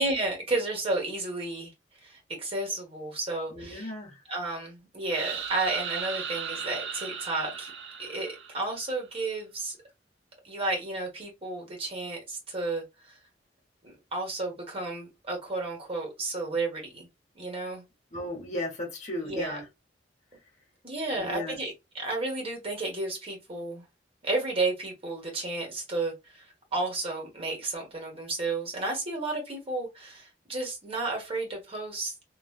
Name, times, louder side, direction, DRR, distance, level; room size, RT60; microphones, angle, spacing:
voice 1, 0.0-1.7 2.0-3.9 4.3-7.7 8.0-9.8 10.4-13.2 13.8-17.1 17.3-17.8 19.2-19.6 20.8-23.8 24.2-32.1, right 2 dB, 35° right, 1.3 m, -32 dB
voice 2, 3.5-4.2 18.1-19.7 21.1-21.6, left 1 dB, 40° left, 1.1 m, -35 dB
sound 1, 5.1-8.9, right 7 dB, 85° right, 0.5 m, -36 dB
3.1 x 2.4 x 2.3 m
head